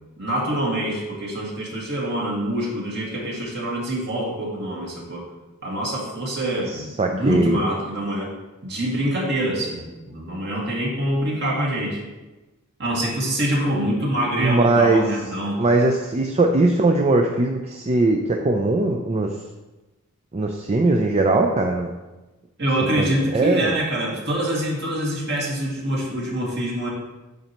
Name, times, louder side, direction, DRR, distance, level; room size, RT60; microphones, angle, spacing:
voice 1, 0.2-5.2 5.6-8.3 8.6-12.0 12.8-15.6 22.6-26.9, right 1 dB, 50° right, -4 dB, 2.0 m, -25 dB
voice 2, 7.0-7.6 14.4-15.1 15.6-19.3 20.3-21.9 23.0-23.7, right 2 dB, 30° right, 2 dB, 0.4 m, -20 dB
9.2 x 5.4 x 3.0 m, 1.1 s
head